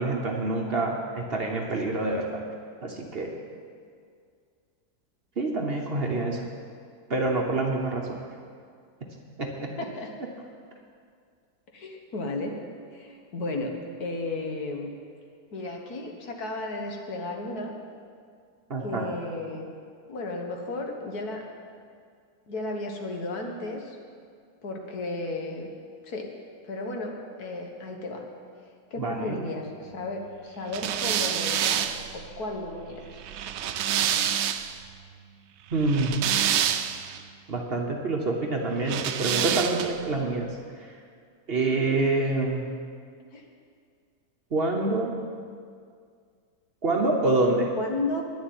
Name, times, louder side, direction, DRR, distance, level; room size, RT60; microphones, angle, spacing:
voice 1, 0.0-2.4 2.8-3.3 5.4-6.4 7.1-8.2 9.4-9.7 18.7-19.1 29.0-29.4 35.7-36.1 37.5-40.5 40.8-40.9 41.5-42.7 44.5-45.1 46.8-47.7, right 2 dB, 45° right, 1 dB, 1.1 m, -26 dB
voice 2, 9.8-10.1 11.7-12.5 12.9-13.7 14.0-14.9 15.5-17.7 18.8-19.7 20.1-21.4 22.5-24.0 24.6-25.7 26.0-26.3 26.6-28.2 28.9-31.9 32.1-33.2 42.2-42.3 43.3-43.5 47.8-48.2, left 2 dB, 70° left, 2 dB, 1.8 m, -34 dB
sound 1, 30.7-34.8 35.7-37.2 38.8-40.1, right 9 dB, 75° right, 0.6 m, -27 dB
10.0 x 7.1 x 9.4 m, 2.2 s
omnidirectional pair, 1.7 m